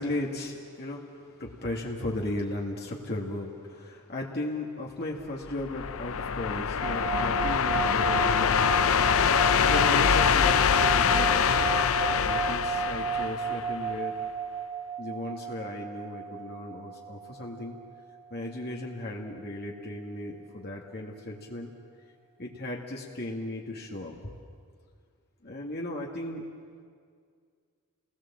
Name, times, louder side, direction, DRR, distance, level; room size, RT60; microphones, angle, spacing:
voice 1, 0.0-14.2 15.0-17.8 18.3-21.7 22.4-24.1 25.4-26.4, left 1 dB, 45° left, -2 dB, 2.0 m, -36 dB
sound 1, 5.5-13.9, left 7 dB, 65° left, 0.7 m, -24 dB
sound 2, 6.8-18.2, right 7 dB, 25° right, 1.3 m, -34 dB
29.5 x 20.0 x 7.4 m, 2.1 s
head